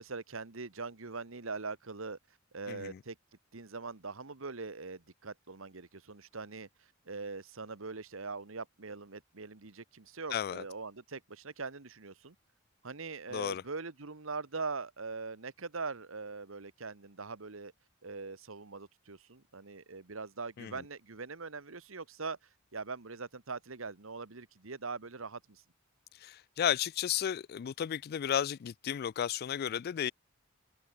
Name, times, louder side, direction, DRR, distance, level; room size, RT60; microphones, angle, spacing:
voice 1, 0.0-2.2 2.5-3.1 3.5-6.7 7.1-12.3 12.8-17.7 18.0-22.4 22.7-25.6, right 4 dB, 70° right, 1.4 m, -42 dB
voice 2, 2.7-3.0 10.3-10.6 13.3-13.6 20.6-20.8 26.2-30.1, left 9 dB, 50° left, 0.3 m, -33 dB
head